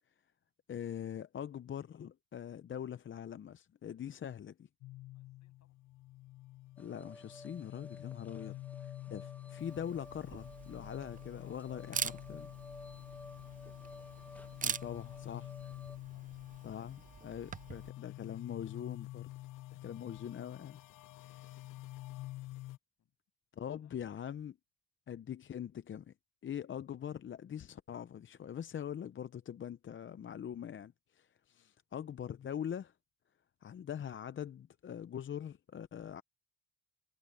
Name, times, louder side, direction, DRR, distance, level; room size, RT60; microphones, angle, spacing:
voice 1, 0.7-4.7 6.8-8.5 9.1-12.5 14.6-15.5 16.6-19.3 19.8-20.8 21.2-21.7 23.5-24.5 25.1-26.1 26.4-32.9 33.6-36.2, left 9 dB, 40° left, 0.6 m, -43 dB
sound 1, 4.8-22.8, left 18 dB, 85° left, 0.6 m, -49 dB
voice 2, 5.1-5.8 8.3-8.6 9.0-9.4 11.3-15.3 15.6-16.7 19.7-20.2 23.0-23.2 23.8-24.2 31.5-31.7, left 10 dB, 65° left, 7.3 m, -72 dB
sound 2, 6.8-16.0, left 1 dB, 5° left, 1.5 m, -54 dB
Camera, 9.6-17.9, right 7 dB, 25° right, 0.5 m, -44 dB
cardioid pair, 90°, 30 cm